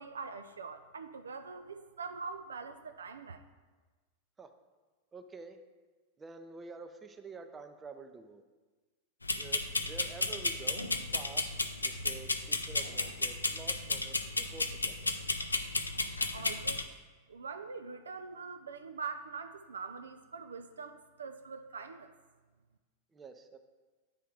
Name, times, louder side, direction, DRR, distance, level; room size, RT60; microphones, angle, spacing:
voice 1, 0.0-3.4 16.3-16.9 17.3-22.1, right 5 dB, 70° right, 8 dB, 0.3 m, -43 dB
voice 2, 5.1-5.6 6.2-8.4 9.3-11.5 11.8-15.1 23.1-23.6, right 4 dB, 20° right, 7 dB, 0.5 m, -49 dB
sound 1, 9.2-16.8, left 3 dB, 80° left, 0.4 m, -33 dB
8.9 x 3.4 x 4.7 m, 1.3 s
figure-of-eight pair, 90°, 0 cm